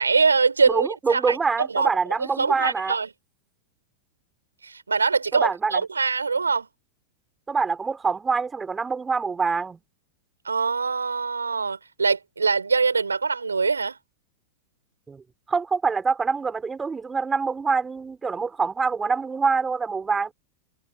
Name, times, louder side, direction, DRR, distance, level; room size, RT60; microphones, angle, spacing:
voice 1, 0.0-1.9 2.2-3.1 4.6-6.7 10.4-14.0, right 4 dB, 75° right, 6.0 m, -23 dB
voice 2, 0.7-3.0 5.4-5.7 7.5-9.8 15.1-15.2 15.5-20.3, right 5 dB, 15° right, 3.9 m, -25 dB
figure-of-eight pair, 90°, 0 cm